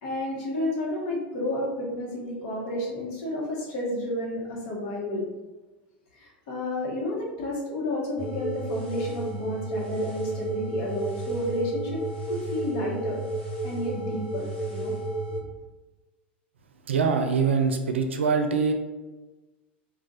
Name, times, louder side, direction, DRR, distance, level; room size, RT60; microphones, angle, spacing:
voice 1, 0.0-5.3 6.1-12.0 12.3-13.2 13.6-14.9, left 1 dB, 55° left, -3 dB, 1.1 m, -31 dB
sound 1, 8.2-15.4, right 2 dB, 85° left, 1.3 m, -32 dB
voice 2, 16.9-18.7, right 5 dB, 90° right, 5 dB, 0.4 m, -23 dB
2.4 x 2.3 x 3.9 m, 1.2 s
hypercardioid pair, 95°, 6 cm